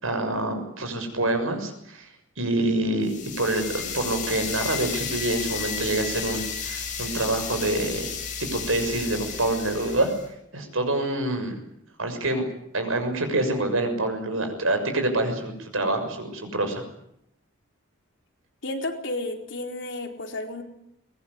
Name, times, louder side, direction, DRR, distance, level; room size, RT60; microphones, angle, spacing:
voice 1, 0.0-2.1 2.4-8.1 8.5-10.1 10.5-11.6 12.0-12.5 12.7-16.8, right 2 dB, 70° right, 6 dB, 6.5 m, -26 dB
sound 1, 3.0-10.2, left 6 dB, 35° left, 7.0 m, -33 dB
voice 2, 18.6-20.6, left 2 dB, 55° left, 3 dB, 4.3 m, -32 dB
23.0 x 20.5 x 9.8 m, 0.76 s
head